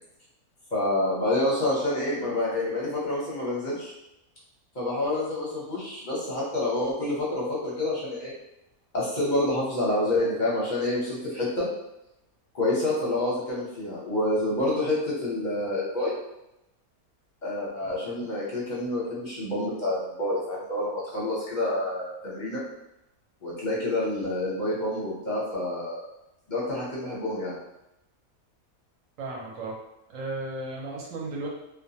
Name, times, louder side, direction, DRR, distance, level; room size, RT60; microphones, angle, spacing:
voice 1, 0.7-3.9 4.7-8.3 8.9-11.7 12.5-16.1 17.4-22.6 23.4-26.0 26.5-27.6, left 1 dB, 40° left, -7 dB, 0.7 m, -28 dB
voice 2, 29.2-29.8 30.1-31.5, right 2 dB, 65° right, -3 dB, 1.0 m, -34 dB
2.5 x 2.2 x 2.7 m, 0.90 s
omnidirectional pair, 1.6 m